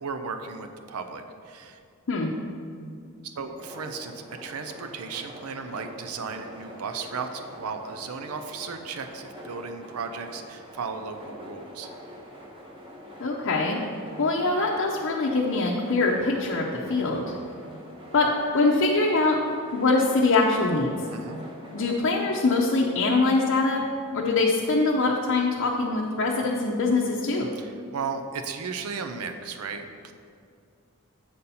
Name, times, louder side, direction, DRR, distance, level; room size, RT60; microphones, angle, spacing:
voice 1, 0.0-1.8 3.2-11.9 21.1-21.4 27.6-30.1, right 5 dB, 85° right, 6 dB, 0.5 m, -35 dB
sound 1, 3.6-22.0, equal, 25° right, 1.1 m, -44 dB
voice 2, 13.2-13.8 14.2-17.3 18.1-18.3 18.5-19.4 19.7-20.9 21.7-23.8 24.1-27.5, left 3 dB, 60° left, -2 dB, 0.6 m, -23 dB
7.9 x 4.2 x 5.4 m, 2.4 s
head